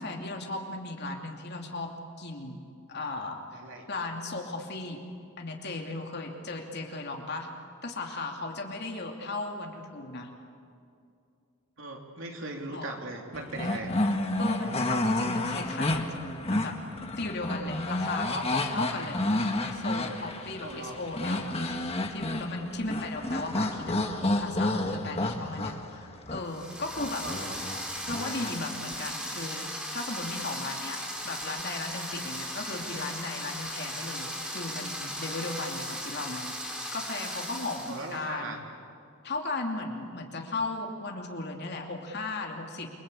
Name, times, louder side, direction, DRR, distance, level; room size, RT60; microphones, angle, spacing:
voice 1, 0.0-1.9 2.2-2.6 2.9-3.6 3.9-5.0 5.4-7.5 7.8-10.3 12.7-13.0 14.4-16.8 17.2-19.2 19.7-21.5 22.1-24.0 24.3-27.2 28.1-36.5 36.9-38.6 39.2-42.9, left 2 dB, 50° left, 2 dB, 2.8 m, -36 dB
voice 2, 3.5-3.9 11.8-13.9 20.6-21.0 27.2-27.6 37.8-38.6, right 2 dB, 60° right, 1 dB, 3.6 m, -39 dB
sound 1, 13.3-28.5, left 1 dB, 25° left, 1.7 m, -30 dB
sound 2, 26.4-38.2, equal, 5° right, 3.5 m, -37 dB
28.5 x 23.5 x 8.5 m, 2.5 s
head